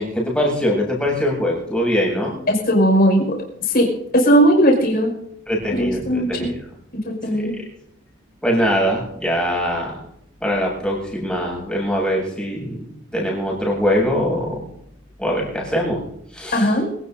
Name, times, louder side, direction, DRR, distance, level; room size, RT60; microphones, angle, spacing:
voice 1, 0.0-2.4 5.5-6.5 7.4-7.6 8.4-10.1 10.4-14.6 15.2-16.0 16.3-16.7, equal, 5° left, -3 dB, 7.9 m, -22 dB
voice 2, 2.5-3.3 3.7-3.9 4.1-5.1 5.7-6.5 6.9-7.5 16.5-16.9, equal, 50° left, 1 dB, 5.5 m, -17 dB
26.0 x 18.0 x 2.8 m, 0.74 s
head